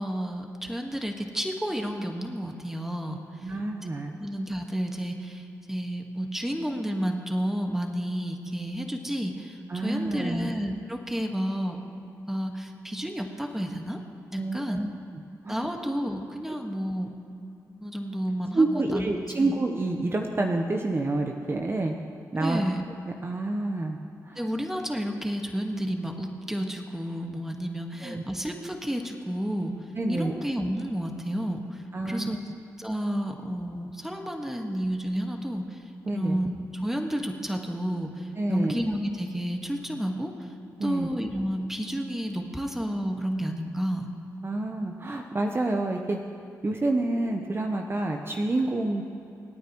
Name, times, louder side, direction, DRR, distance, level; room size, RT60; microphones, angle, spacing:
voice 1, 0.0-3.5 4.2-11.8 12.1-14.0 14.3-14.8 15.5-17.1 17.7-18.7 18.9-19.0 19.4-19.6 22.4-22.8 24.3-29.8 30.1-32.4 32.8-40.5 40.8-44.1, equal, 5° right, 3 dB, 1.6 m, -31 dB
voice 2, 3.4-4.2 9.7-10.5 14.4-14.9 15.4-15.6 18.5-21.9 22.3-22.6 23.2-24.0 24.3-24.4 28.0-28.2 29.9-30.3 31.9-32.4 36.1-36.4 38.4-38.7 40.8-41.1 44.4-46.2 46.6-49.0, right 2 dB, 35° right, 3 dB, 1.0 m, -28 dB
26.5 x 9.3 x 3.1 m, 2.7 s
supercardioid pair, 50°, 7 cm